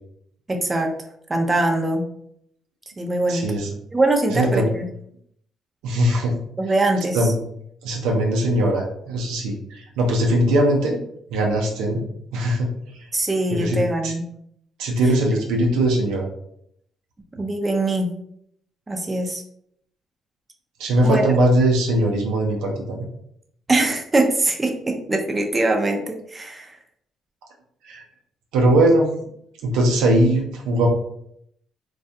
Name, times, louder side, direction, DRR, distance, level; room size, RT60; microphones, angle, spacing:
voice 1, 0.5-0.9 1.3-2.0 3.0-3.4 3.9-4.9 6.6-7.3 13.1-14.2 17.4-18.1 18.9-19.4 21.0-21.3 23.7-26.8, right 2 dB, 25° right, 2 dB, 0.5 m, -22 dB
voice 2, 3.3-3.7 4.3-4.7 5.8-6.3 7.1-7.3 7.8-11.0 11.3-12.0 12.3-12.7 13.5-14.1 14.8-16.3 20.8-23.1 27.9-28.0 28.5-29.1 29.6-30.9, right 1 dB, 80° right, 1 dB, 0.5 m, -20 dB
2.3 x 2.2 x 2.6 m, 0.71 s
supercardioid pair, 60°, 0 cm